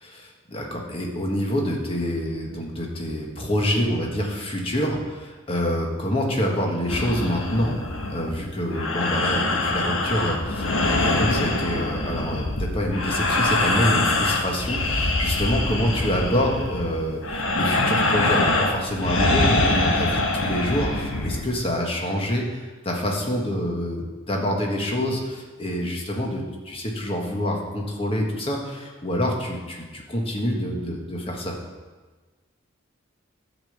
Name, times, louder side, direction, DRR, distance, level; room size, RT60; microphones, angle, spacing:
voice 1, 0.0-7.7 8.1-31.5, equal, 25° left, 0 dB, 1.5 m, -26 dB
sound 1, 6.9-21.5, left 2 dB, 90° left, 1.4 m, -24 dB
10.5 x 5.3 x 7.9 m, 1.3 s
head